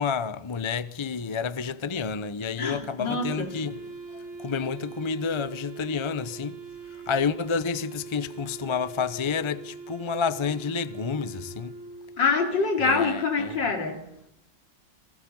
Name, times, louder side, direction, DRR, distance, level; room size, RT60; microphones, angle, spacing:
voice 1, 0.0-3.8 4.4-6.6 7.1-11.7 12.8-13.6, left 6 dB, 35° left, 0.5 m, -29 dB
voice 2, 2.6-3.5 12.2-14.0, left 4 dB, 80° left, 3.6 m, -25 dB
Wind instrument woodwind instrument, 3.1-12.3, right 5 dB, 45° right, 4.2 m, -42 dB
29.0 x 22.0 x 5.5 m
omnidirectional pair, 2.0 m